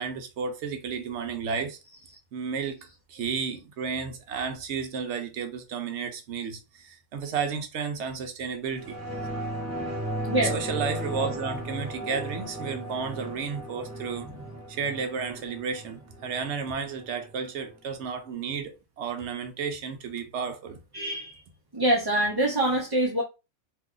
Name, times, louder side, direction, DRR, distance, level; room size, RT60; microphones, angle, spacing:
voice 1, 0.0-1.8 2.3-2.8 3.1-9.0 10.4-14.3 14.7-20.8, right 6 dB, 65° right, 0.8 m, -32 dB
sound 1, 8.8-17.8 18.1-18.2, right 1 dB, 15° right, 1.0 m, -35 dB
voice 2, 20.9-21.4 21.7-23.2, right 1 dB, 30° right, 0.4 m, -25 dB
2.7 x 2.3 x 3.6 m
omnidirectional pair, 1.4 m